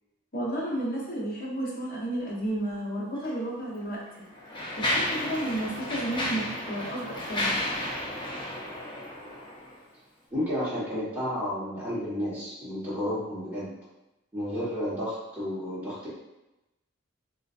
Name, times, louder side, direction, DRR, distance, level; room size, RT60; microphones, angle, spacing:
voice 1, 0.3-4.0 4.5-7.6, right 1 dB, 45° left, -6 dB, 0.9 m, -32 dB
Mechanisms, 3.2-3.3 4.0-9.8, left 1 dB, 20° left, 0.5 m, -32 dB
voice 2, 10.3-13.7 14.3-16.1, equal, 10° right, -10 dB, 1.1 m, -31 dB
3.7 x 2.5 x 2.4 m, 0.96 s
head